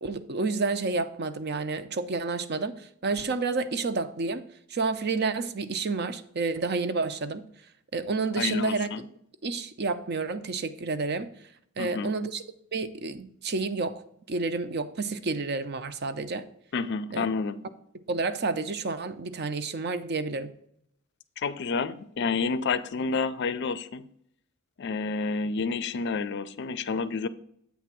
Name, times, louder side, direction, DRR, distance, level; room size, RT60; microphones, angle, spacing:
voice 1, 0.0-7.4 7.9-9.0 9.4-11.3 11.8-12.4 12.7-14.0 14.3-16.5 17.1-17.3 18.1-20.5, right 4 dB, 50° right, 0.6 m, -30 dB
voice 2, 8.4-9.0 11.8-12.1 16.7-17.6 21.4-24.1 24.8-27.3, left 4 dB, 55° left, 0.4 m, -29 dB
8.3 x 3.4 x 6.0 m
head